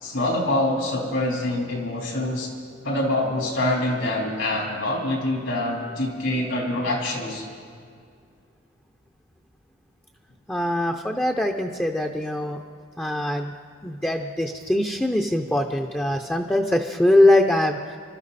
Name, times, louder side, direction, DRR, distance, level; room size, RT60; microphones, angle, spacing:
voice 1, 0.0-2.5 2.8-7.4, left 1 dB, 80° left, -1 dB, 3.8 m, -25 dB
voice 2, 10.5-12.6 13.0-13.5 13.8-17.9, left 1 dB, 10° left, 3 dB, 0.6 m, -22 dB
25.5 x 13.0 x 4.1 m, 2.2 s
head